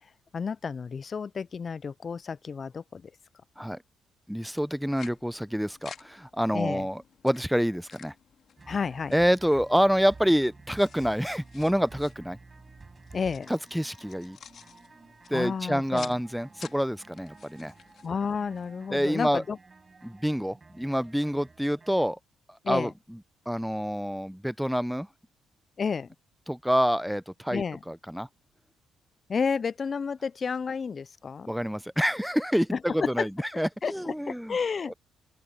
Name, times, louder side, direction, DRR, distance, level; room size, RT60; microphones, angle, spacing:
voice 1, 0.3-3.1 6.5-6.9 8.7-9.1 13.1-13.5 15.3-16.2 18.0-19.6 22.6-22.9 25.8-26.1 27.5-27.8 29.3-31.5 32.7-33.3 33.8-34.9, left 5 dB, 40° left, 0.3 m, -31 dB
voice 2, 4.3-8.1 9.1-12.4 13.5-14.4 15.3-17.7 18.9-19.4 20.0-22.2 22.7-23.2 23.5-25.1 26.5-28.3 31.5-33.3 33.6-34.6 34.9-35.0, equal, ahead, 0.6 m, -27 dB
sound 1, 4.6-18.8, left 8 dB, 60° left, 2.4 m, -52 dB
sound 2, 8.6-22.1, right 4 dB, 30° right, 6.8 m, -52 dB
open air
cardioid pair, 90°, 0 cm